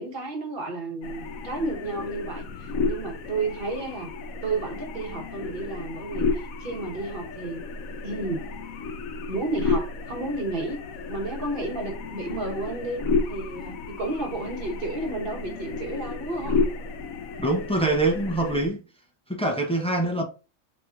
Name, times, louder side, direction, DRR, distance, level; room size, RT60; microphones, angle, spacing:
voice 1, 0.0-4.1 4.4-7.6 8.0-8.4 9.3-10.8 11.1-13.0 13.3-16.6 20.0-20.2, right 2 dB, 45° right, 1.2 m, -32 dB
sound 1, 1.0-18.7, left 4 dB, 85° left, 1.0 m, -32 dB
voice 2, 17.4-18.8 19.3-20.2, right 2 dB, 10° left, 0.4 m, -24 dB
3.2 x 2.9 x 3.6 m
omnidirectional pair, 1.4 m